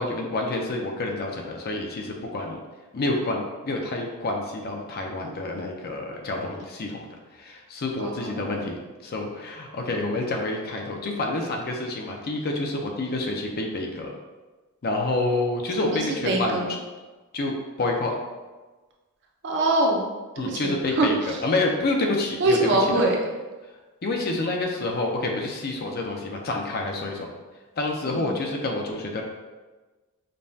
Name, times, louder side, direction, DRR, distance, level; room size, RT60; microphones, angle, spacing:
voice 1, 0.0-2.6 2.9-7.0 7.3-14.1 14.8-16.6 17.3-18.2 20.4-22.6 24.0-27.3 27.8-29.2, left 2 dB, 45° left, 1 dB, 0.5 m, -28 dB
voice 2, 8.0-8.5 15.8-16.7 19.4-20.1 20.4-21.4 22.4-23.2 28.1-28.4, right 2 dB, 55° right, -1 dB, 0.6 m, -24 dB
5.2 x 2.2 x 2.7 m, 1.3 s
head